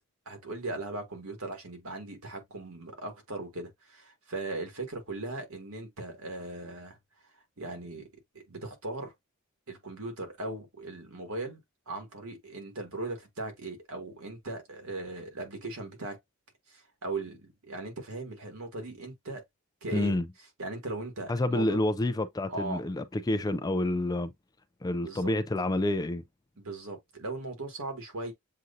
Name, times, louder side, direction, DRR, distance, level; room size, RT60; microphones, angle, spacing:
voice 1, 0.3-7.0 7.2-8.1 8.3-9.1 9.7-11.6 11.9-16.2 16.7-19.4 19.8-20.2 20.6-21.8 22.5-22.8 25.0-25.3 26.6-28.3, right 2 dB, 80° right, 1.7 m, -38 dB
voice 2, 19.9-20.3 21.3-24.3 24.8-26.2, left 1 dB, 15° left, 0.3 m, -28 dB
7.5 x 2.6 x 2.5 m
head